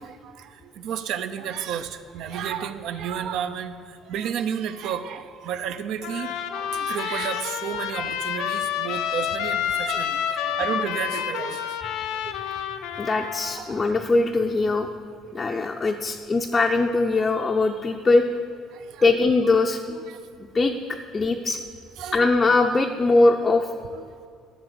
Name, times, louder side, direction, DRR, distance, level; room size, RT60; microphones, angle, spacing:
voice 1, 0.0-11.8 12.1-12.5 13.5-13.8 15.2-15.4 18.7-19.1 19.4-19.5 20.1-20.2 22.0-22.3 23.9-24.3, right 8 dB, 65° right, 11 dB, 0.6 m, -32 dB
Trumpet, 6.0-13.6, left 9 dB, 80° left, 0.8 m, -29 dB
voice 2, 11.9-12.3 13.0-14.9 15.3-18.3 19.0-20.0 20.5-21.6 22.1-23.7, left 3 dB, 20° left, 2 dB, 0.5 m, -21 dB
12.0 x 7.1 x 6.8 m, 2.3 s
cardioid pair, 155°, 0 cm